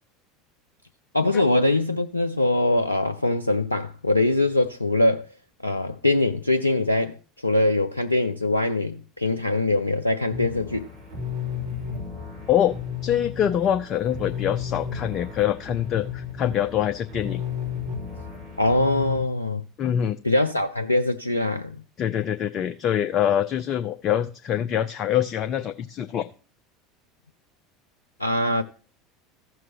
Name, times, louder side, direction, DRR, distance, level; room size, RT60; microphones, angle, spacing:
voice 1, 1.1-5.3 5.6-7.2 7.4-10.9 18.6-19.6 20.2-21.8 28.2-28.6, left 2 dB, 90° left, 0.3 m, -22 dB
sound 1, 10.3-19.2, left 7 dB, 60° right, 4.3 m, -33 dB
voice 2, 13.0-17.4 19.8-20.2 22.0-26.2, left 10 dB, 40° left, 0.5 m, -24 dB
15.0 x 6.1 x 2.9 m
figure-of-eight pair, 75°, 0 cm